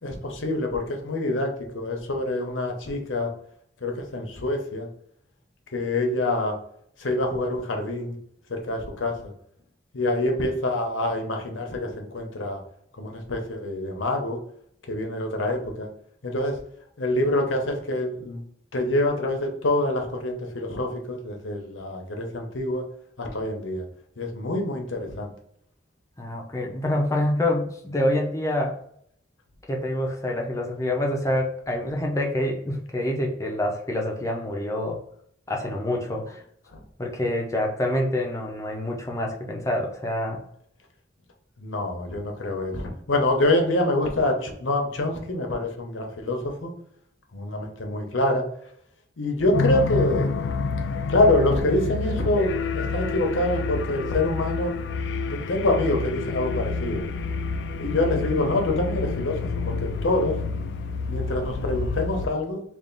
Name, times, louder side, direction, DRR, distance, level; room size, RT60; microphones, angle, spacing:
voice 1, 0.0-3.3 3.8-4.9 5.7-6.6 7.0-8.2 8.5-9.3 9.9-12.6 13.0-14.4 14.9-15.9 16.2-16.6 17.0-18.4 18.7-22.8 23.2-23.8 24.2-25.3 36.7-36.8 41.6-46.7 47.3-48.4 49.2-50.3 51.1-54.7 55.3-57.0 57.8-60.4 61.1-62.6, left 1 dB, 85° left, 2 dB, 0.8 m, -26 dB
voice 2, 26.2-28.8 29.7-35.0 35.5-36.4 37.0-40.4, left 1 dB, 15° left, 0 dB, 0.6 m, -26 dB
sound 1, 49.5-62.3, left 4 dB, 60° left, 0.3 m, -28 dB
3.4 x 2.5 x 3.9 m, 0.67 s
head